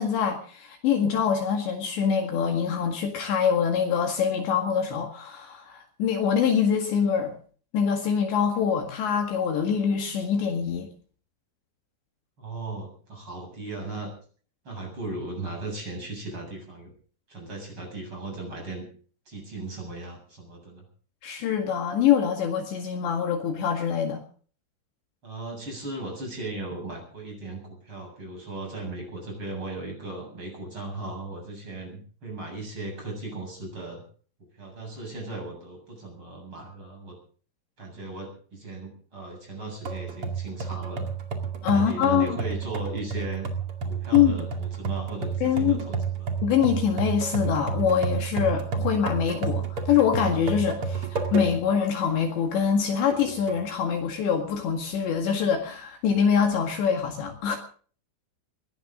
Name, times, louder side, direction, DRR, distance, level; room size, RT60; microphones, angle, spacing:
voice 1, 0.0-7.3 7.7-10.9 21.2-24.2 41.6-42.4 44.1-44.4 45.4-45.8 46.4-57.6, left 7 dB, 65° left, 4 dB, 3.9 m, -24 dB
voice 2, 12.4-14.1 14.6-16.9 17.3-18.9 19.3-20.8 25.2-34.0 34.6-37.2 37.8-41.1 41.7-43.5 43.8-46.4, right 2 dB, 25° right, 2 dB, 8.3 m, -37 dB
sound 1, 39.8-51.8 52.2-52.3 53.1-53.7, right 5 dB, 45° right, 2.0 m, -31 dB
21.5 x 16.5 x 3.8 m, 0.43 s
omnidirectional pair, 5.9 m